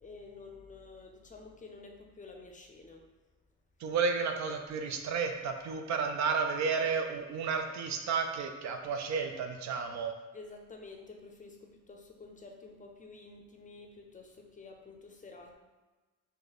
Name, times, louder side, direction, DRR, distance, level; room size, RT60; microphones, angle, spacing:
voice 1, 0.0-3.0 10.3-15.5, left 3 dB, 25° left, 2 dB, 0.5 m, -50 dB
voice 2, 3.8-10.1, right 5 dB, 65° right, 5 dB, 0.5 m, -32 dB
3.1 x 2.2 x 3.9 m, 1.2 s
cardioid pair, 90°, 30 cm